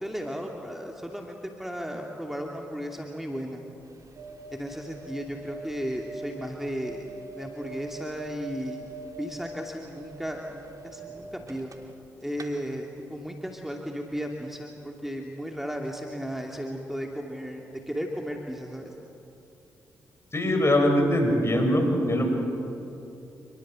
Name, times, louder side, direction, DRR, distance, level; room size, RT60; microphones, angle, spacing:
voice 1, 0.0-3.6 4.5-7.1 7.4-8.9 9.2-11.7 12.2-18.9, equal, 5° right, 1 dB, 2.7 m, -35 dB
sound 1, 3.8-12.0 12.3-12.5, right 2 dB, 50° right, 3.0 m, -43 dB
voice 2, 20.3-22.2, left 1 dB, 35° left, 3 dB, 7.1 m, -22 dB
27.0 x 21.0 x 7.6 m, 2.8 s
hypercardioid pair, 45°, 8 cm